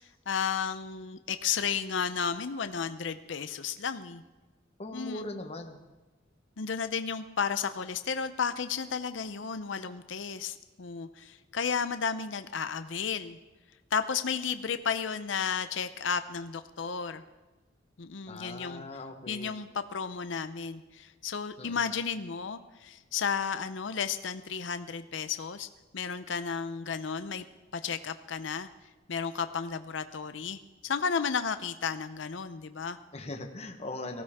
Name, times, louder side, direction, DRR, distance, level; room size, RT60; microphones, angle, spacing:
voice 1, 0.3-4.2 4.9-5.3 6.6-13.4 13.9-17.2 18.0-18.8 19.3-25.7 25.9-27.4 27.7-28.7 29.1-33.0, left 6 dB, 75° left, 10 dB, 0.6 m, -33 dB
voice 2, 4.8-5.8 18.3-19.5 21.6-21.9 33.1-34.2, left 2 dB, 35° left, 4 dB, 1.1 m, -40 dB
18.5 x 15.5 x 3.6 m, 1.2 s
head